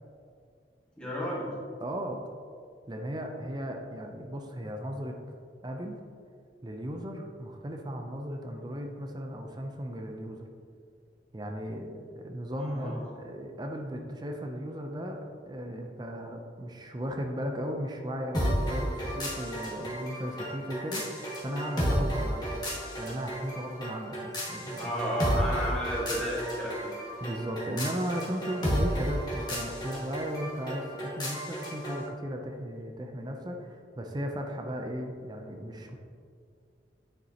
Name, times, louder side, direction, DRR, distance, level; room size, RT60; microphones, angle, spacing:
voice 1, 1.0-1.5 12.6-13.0 24.8-26.9, equal, 5° left, -7 dB, 1.7 m, -32 dB
voice 2, 1.8-2.2 2.9-5.2 5.6-6.0 6.6-10.5 11.3-22.5 23.0-24.9 27.2-36.0, equal, 25° right, 3 dB, 0.6 m, -36 dB
sound 1, 18.3-32.1, equal, 25° left, 1.5 m, -33 dB
9.3 x 6.6 x 2.9 m, 2.3 s
head